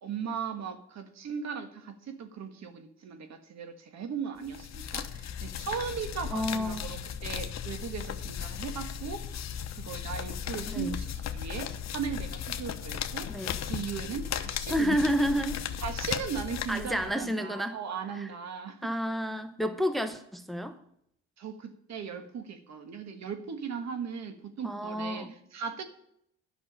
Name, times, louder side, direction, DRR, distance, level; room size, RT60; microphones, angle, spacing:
voice 1, 0.0-9.2 9.7-15.0 15.8-18.9 21.4-25.8, right 6 dB, 65° right, 8 dB, 1.6 m, -38 dB
sound 1, 4.4-17.3, left 9 dB, 60° left, 1.0 m, -36 dB
voice 2, 6.3-6.9 10.7-11.0 13.3-13.6 14.7-15.6 16.7-17.8 18.2-18.3 18.8-20.8 24.6-25.4, equal, ahead, 9 dB, 0.9 m, -30 dB
10.5 x 6.1 x 8.7 m, 0.72 s
cardioid pair, 90°, 30 cm